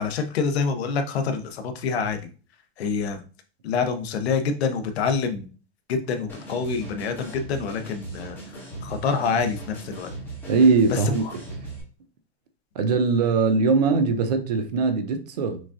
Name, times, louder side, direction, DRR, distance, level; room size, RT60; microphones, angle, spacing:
voice 1, 0.0-2.3 2.8-3.2 3.6-5.5 5.9-8.4 8.8-10.1 10.9-11.3, left 5 dB, 75° left, 0.8 m, -26 dB
sound 1, 6.3-11.8, right 2 dB, 5° left, 0.7 m, -38 dB
voice 2, 10.5-11.2 12.8-15.6, right 4 dB, 40° right, 0.4 m, -21 dB
6.0 x 2.5 x 2.5 m
supercardioid pair, 175°, 32 cm